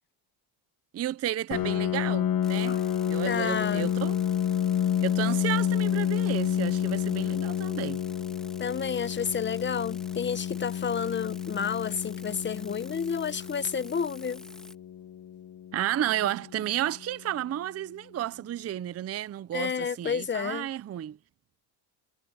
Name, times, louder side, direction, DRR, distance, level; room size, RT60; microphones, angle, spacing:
voice 1, 0.9-2.8 3.1-4.2 5.0-8.0 15.7-21.2, right 12 dB, 35° right, 0.5 m, -32 dB
Piano, 1.5-16.9, left 9 dB, 45° left, 1.2 m, -30 dB
sound 1, 2.4-14.7, equal, ahead, 1.8 m, -50 dB
voice 2, 3.2-3.9 8.6-14.4 19.5-20.7, left 6 dB, 25° left, 0.9 m, -30 dB
cardioid pair, 125°, 47 cm